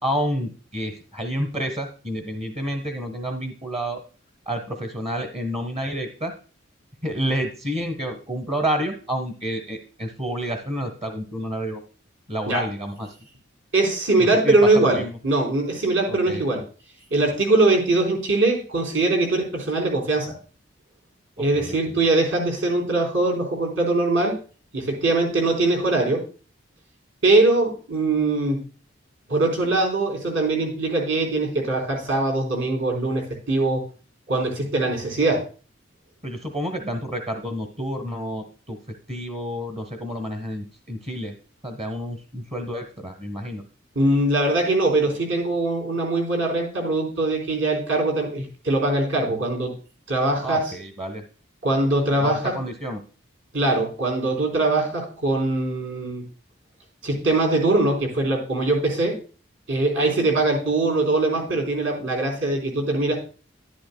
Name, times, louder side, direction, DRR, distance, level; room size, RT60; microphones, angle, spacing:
voice 1, 0.0-4.0 4.5-6.3 7.0-11.8 12.3-13.1 14.2-15.2 16.1-16.4 21.4-21.8 36.2-38.8 39.1-41.3 41.6-43.6 50.4-51.2 52.2-53.0, equal, 35° right, 5 dB, 1.0 m, -29 dB
voice 2, 13.7-16.6 17.1-20.3 21.4-24.4 24.7-26.3 27.2-28.7 29.3-33.8 34.3-35.4 44.0-49.7 50.1-50.7 51.6-52.5 53.5-56.3 57.0-59.2 59.7-63.2, right 2 dB, 75° right, 0 dB, 3.9 m, -22 dB
11.5 x 10.5 x 2.2 m, 0.38 s
head